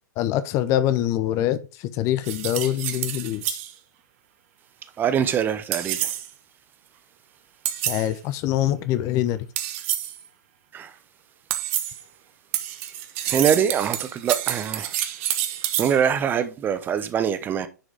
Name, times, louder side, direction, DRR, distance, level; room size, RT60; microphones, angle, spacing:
voice 1, 0.2-3.6 7.9-9.5, left 12 dB, 30° left, 0.7 m, -24 dB
sound 1, 2.2-3.7 5.7-6.3 7.6-8.1 9.6-10.2 11.5-12.0 12.5-16.0, right 12 dB, 40° right, 1.2 m, -28 dB
voice 2, 5.0-6.0 10.7-10.9 13.3-14.9 15.8-17.7, right 8 dB, 20° right, 0.8 m, -23 dB
10.5 x 4.9 x 3.6 m
figure-of-eight pair, 105°, 10 cm